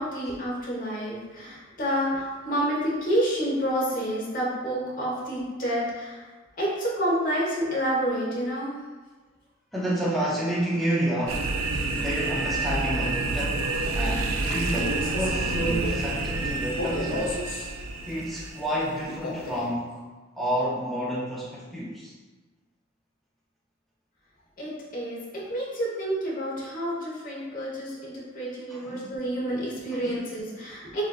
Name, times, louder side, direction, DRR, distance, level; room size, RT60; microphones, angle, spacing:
voice 1, 0.0-6.3 6.6-8.8 24.6-31.0, equal, 40° left, -6 dB, 1.2 m, -29 dB
voice 2, 9.7-11.5 11.9-17.4 18.1-20.0 20.4-22.1 28.7-29.1 29.9-30.1, equal, ahead, -6 dB, 0.4 m, -30 dB
sound 1, 11.3-19.2, right 3 dB, 90° right, 0.4 m, -29 dB
Male speech man speaking, 14.6-17.7 19.1-19.7, left 1 dB, 70° left, 0.7 m, -33 dB
7.0 x 2.5 x 2.3 m, 1.3 s
head